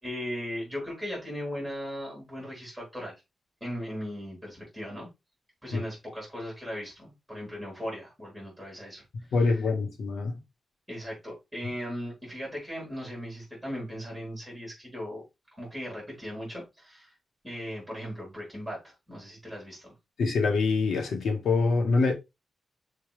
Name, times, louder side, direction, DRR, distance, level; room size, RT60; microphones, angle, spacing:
voice 1, 0.0-3.1 3.6-5.1 5.6-9.0 10.9-15.2 15.6-17.1 17.4-19.9, equal, ahead, 4.4 m, -38 dB
voice 2, 9.3-10.4 20.2-22.1, left 4 dB, 75° left, 1.8 m, -25 dB
6.4 x 4.3 x 3.4 m
wide cardioid pair, 155°, 0 cm